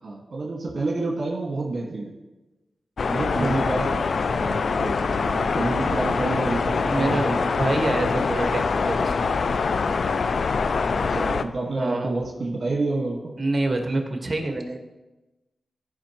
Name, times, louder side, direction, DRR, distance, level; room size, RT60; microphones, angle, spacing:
voice 1, 0.0-2.1 3.0-7.5 8.1-8.2 11.0-13.3, right 2 dB, 60° right, -3 dB, 1.6 m, -29 dB
sound 1, 3.0-11.4, left 4 dB, 70° left, 0.4 m, -24 dB
voice 2, 6.9-9.1 11.8-12.1 13.4-14.9, right 2 dB, 40° right, 3 dB, 1.5 m, -26 dB
14.0 x 5.3 x 3.0 m, 1.1 s
cardioid pair, 55°, 0 cm